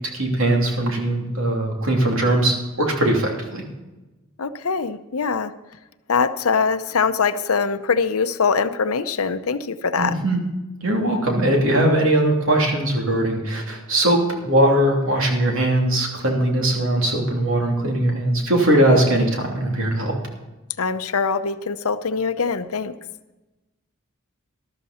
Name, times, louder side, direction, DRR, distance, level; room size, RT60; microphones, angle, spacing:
voice 1, 0.1-3.6 10.0-10.4 10.8-20.2, right 1 dB, 65° right, 1 dB, 3.0 m, -20 dB
voice 2, 4.4-5.5 6.1-10.2 20.8-22.9, left 5 dB, 80° left, 12 dB, 0.7 m, -22 dB
13.0 x 12.5 x 4.3 m, 1.1 s
head